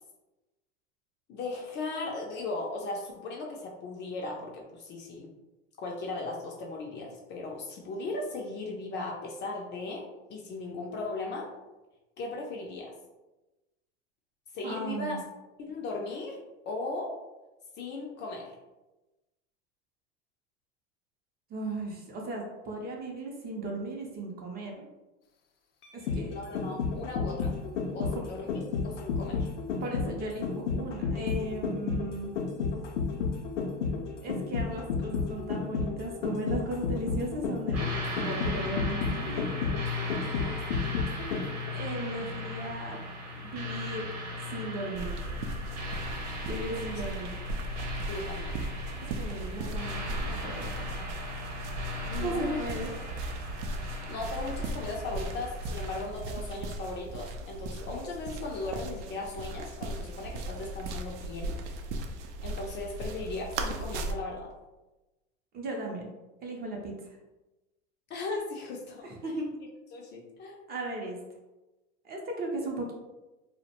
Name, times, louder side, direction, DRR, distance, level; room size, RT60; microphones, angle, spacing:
voice 1, 1.3-5.3 5.8-10.0 10.3-11.5 12.2-12.9 14.5-15.2 15.6-16.4 16.7-17.1 17.8-18.5 26.3-27.5 27.9-28.5 28.8-29.5 48.0-48.5 52.1-52.6 54.1-61.6 62.4-64.5 68.1-69.3 69.9-70.7, left 3 dB, 30° left, -1 dB, 0.4 m, -37 dB
voice 2, 14.6-15.2 21.5-24.9 25.9-26.4 28.1-28.3 29.8-32.3 34.2-39.5 41.7-43.1 43.3-44.1 44.5-45.1 46.5-47.3 49.2-50.9 52.2-52.9 65.5-66.1 66.4-67.2 69.0-69.4 70.7-71.2 72.0-72.9, right 2 dB, 30° right, 0 dB, 0.5 m, -36 dB
sound 1, 25.8-41.7 42.0-42.1, left 5 dB, 90° left, 0.5 m, -31 dB
sound 2, 37.7-56.0, left 2 dB, 45° right, 0.9 m, -37 dB
sound 3, 45.0-64.1, right 2 dB, 75° right, 0.5 m, -37 dB
2.4 x 2.1 x 2.8 m, 1.1 s
hypercardioid pair, 110°, 35 cm